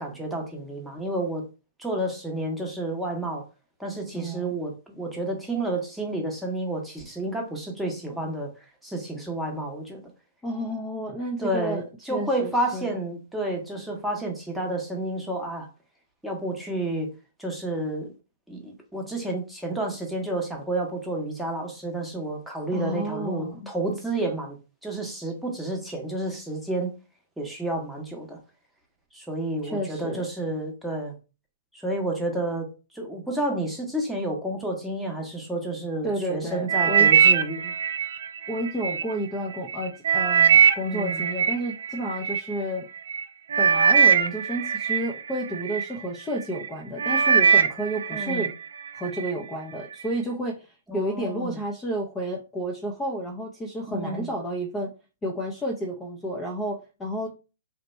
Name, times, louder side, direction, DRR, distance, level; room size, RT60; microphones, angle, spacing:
voice 1, 0.0-1.4 1.8-3.4 3.8-8.5 8.8-10.0 11.4-15.7 16.2-17.1 17.4-18.1 18.5-24.6 24.8-26.9 27.4-28.4 29.1-31.1 31.7-32.7 32.9-37.7 40.8-41.2 48.1-48.5 50.9-51.6 53.9-54.3, right 1 dB, ahead, 0.9 m, -30 dB
voice 2, 4.1-4.6 10.4-11.8 12.1-12.9 22.7-23.7 29.6-30.2 36.0-37.1 38.5-42.9 43.6-48.5 49.0-54.9 55.2-57.3, right 1 dB, 15° left, 0.6 m, -31 dB
sound 1, 36.7-39.0 39.5-42.4 43.1-43.2 43.5-45.9 46.4-46.7 47.0-48.5 48.9-49.3 49.9-50.0, right 7 dB, 70° right, 0.4 m, -21 dB
2.9 x 2.1 x 4.1 m
hypercardioid pair, 125°, 0 cm